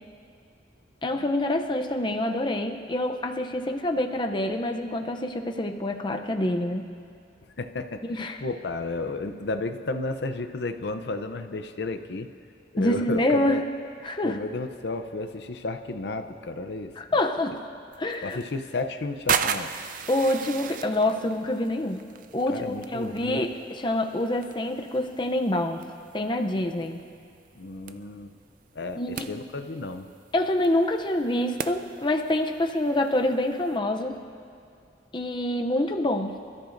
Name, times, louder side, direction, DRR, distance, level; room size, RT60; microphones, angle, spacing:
voice 1, 1.0-6.9 8.1-8.4 12.8-13.7 14.0-14.4 17.0-17.6 18.0-18.4 20.1-22.1 22.3-25.8 26.1-27.0 28.9-29.4 30.3-34.2 35.1-36.4, left 1 dB, 25° left, 4 dB, 0.6 m, -26 dB
voice 2, 7.6-8.0 8.4-12.3 12.7-13.6 14.2-16.9 18.2-19.7 22.5-23.4 27.6-28.3 28.7-30.1, left 3 dB, 70° left, 8 dB, 0.6 m, -32 dB
sound 1, 17.9-33.8, right 7 dB, 45° right, 0.5 m, -37 dB
26.0 x 13.5 x 2.6 m, 2.4 s
head